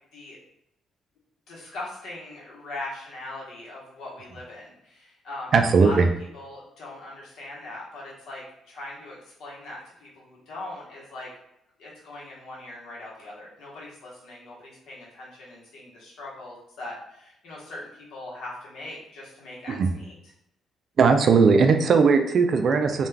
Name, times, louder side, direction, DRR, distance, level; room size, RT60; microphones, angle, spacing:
voice 1, 1.5-6.0 6.3-11.3 11.8-20.1, left 2 dB, 80° left, -5 dB, 1.0 m, -40 dB
voice 2, 5.5-6.1 19.7-19.9 21.0-23.1, right 5 dB, 55° right, 6 dB, 0.3 m, -18 dB
2.3 x 2.3 x 3.2 m, 0.80 s
cardioid pair, 90°, 0 cm